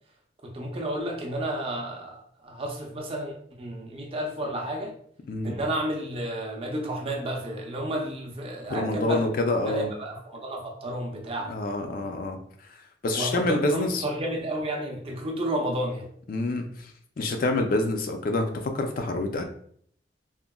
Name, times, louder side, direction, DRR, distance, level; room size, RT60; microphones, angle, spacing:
voice 1, 0.4-4.9 5.4-9.3 9.7-11.5 13.1-16.1, right 1 dB, 30° right, 1 dB, 0.5 m, -31 dB
voice 2, 8.7-9.9 11.5-12.4 13.0-14.0 16.3-16.9 17.2-19.4, left 2 dB, 50° left, 4 dB, 0.3 m, -27 dB
3.7 x 2.0 x 2.2 m, 0.62 s
head